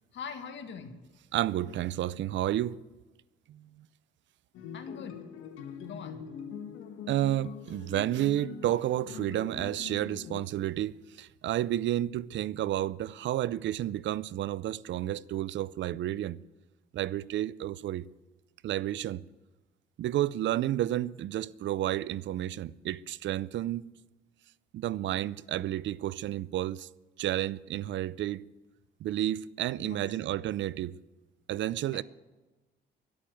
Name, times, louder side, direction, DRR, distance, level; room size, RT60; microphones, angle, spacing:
voice 1, 0.1-1.0 4.7-5.2 5.8-6.2 29.8-30.1 31.9-32.0, left 6 dB, 70° left, 1.8 m, -42 dB
voice 2, 1.3-2.8 3.5-3.9 7.1-16.4 16.9-18.0 18.6-19.2 20.0-23.8 24.7-26.9 27.2-28.4 29.0-30.9 31.5-32.0, right 13 dB, 70° right, 0.5 m, -31 dB
sound 1, 4.5-10.5, left 7 dB, 90° left, 1.4 m, -43 dB
12.0 x 8.7 x 9.1 m
cardioid pair, 90°, 20 cm